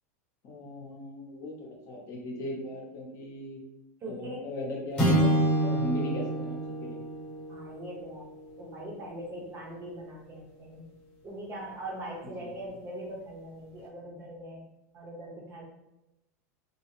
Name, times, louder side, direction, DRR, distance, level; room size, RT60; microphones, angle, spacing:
voice 1, 0.4-3.6 4.1-7.0 12.4-12.5, left 1 dB, 35° left, -1 dB, 0.7 m, -38 dB
voice 2, 4.0-4.4 7.5-8.3 8.6-10.9 11.2-14.6 14.9-15.6, right 1 dB, 25° right, -1 dB, 0.6 m, -41 dB
sound 1, 5.0-9.4, right 1 dB, 15° left, 0.9 m, -28 dB
2.7 x 2.0 x 3.0 m, 0.94 s
supercardioid pair, 140°, 9 cm